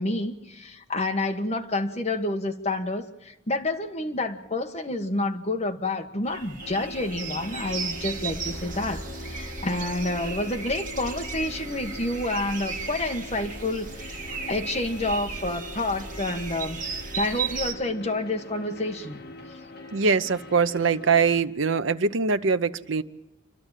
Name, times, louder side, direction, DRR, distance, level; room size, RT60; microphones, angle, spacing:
voice 1, 0.0-16.8 17.1-19.2, left 2 dB, 35° left, 4 dB, 1.5 m, -29 dB
sound 1, 6.2-17.7, right 5 dB, 45° right, 1.8 m, -35 dB
sound 2, 6.6-21.4, left 2 dB, 55° left, 1.8 m, -43 dB
voice 2, 19.9-23.0, right 5 dB, 80° right, 12 dB, 0.7 m, -23 dB
28.0 x 12.0 x 9.0 m, 1.0 s
head